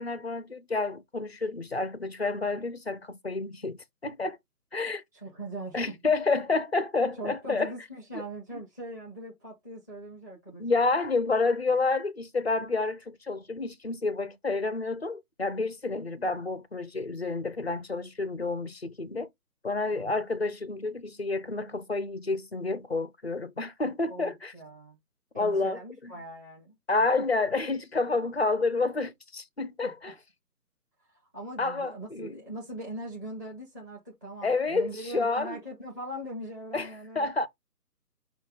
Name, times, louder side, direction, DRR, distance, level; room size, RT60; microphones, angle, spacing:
voice 1, 0.0-4.4 4.7-5.0 5.7-7.7 8.5-8.6 10.6-19.3 19.6-24.5 25.4-26.1 26.9-30.1 31.6-32.4 34.4-35.6 36.7-36.9 37.2-37.5, left 3 dB, 45° left, 0.4 m, -29 dB
voice 2, 5.1-6.0 7.2-10.9 16.1-16.2 19.9-20.2 24.1-25.0 25.3-26.8 27.2-27.3 29.8-30.1 31.3-37.3, right 1 dB, 10° right, 0.9 m, -41 dB
5.5 x 2.3 x 3.7 m
figure-of-eight pair, 150°, 47 cm